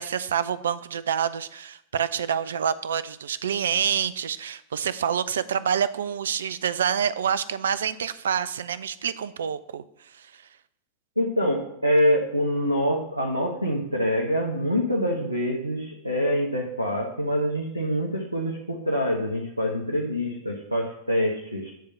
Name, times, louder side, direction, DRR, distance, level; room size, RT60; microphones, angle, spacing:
voice 1, 0.0-9.8 10.2-10.3, right 8 dB, 65° right, 15 dB, 0.4 m, -27 dB
voice 2, 11.2-21.7, equal, 85° right, -1 dB, 1.0 m, -25 dB
9.1 x 3.5 x 6.6 m, 0.76 s
figure-of-eight pair, 90°, 0 cm